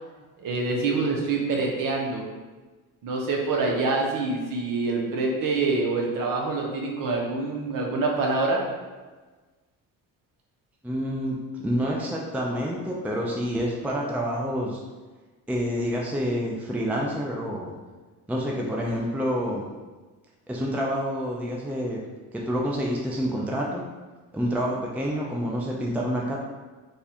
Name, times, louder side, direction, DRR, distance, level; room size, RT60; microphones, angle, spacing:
voice 1, 0.4-2.2 3.0-8.6, right 3 dB, 65° right, -1 dB, 0.9 m, -26 dB
voice 2, 10.8-11.4 11.6-14.8 15.5-17.7 18.3-19.7 20.5-22.0 22.3-23.8 24.3-26.4, equal, 5° right, -2 dB, 0.4 m, -28 dB
3.4 x 2.3 x 4.2 m, 1.3 s
cardioid pair, 90°, 35 cm